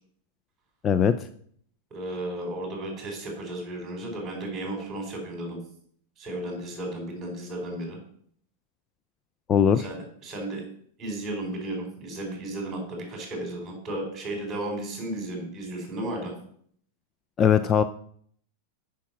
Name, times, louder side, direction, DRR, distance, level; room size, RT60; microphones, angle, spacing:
voice 1, 0.8-1.1 9.5-9.8 17.4-17.8, left 8 dB, 25° left, 11 dB, 0.4 m, -20 dB
voice 2, 1.9-5.6 6.2-8.0 9.8-10.7 11.0-16.3, right 1 dB, 20° right, 2 dB, 4.3 m, -34 dB
8.5 x 5.8 x 7.3 m, 0.62 s
supercardioid pair, 150°, 0 cm